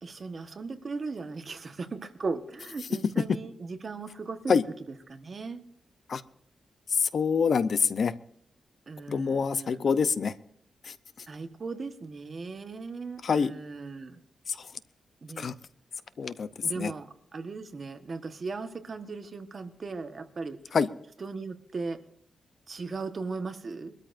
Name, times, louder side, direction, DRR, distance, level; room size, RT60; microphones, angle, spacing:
voice 1, 0.0-4.6 5.1-5.6 8.9-9.9 11.3-14.2 15.2-15.6 16.6-20.6 21.2-22.0 22.7-23.9, right 4 dB, 45° right, 8 dB, 1.3 m, -37 dB
voice 2, 7.0-8.1 9.1-10.3 13.2-13.5 14.5-14.6 15.4-15.5 16.2-16.5 16.8-16.9 20.7-20.9, left 6 dB, 60° left, 14 dB, 0.7 m, -25 dB
23.0 x 13.0 x 2.6 m, 0.71 s
wide cardioid pair, 110°, 0 cm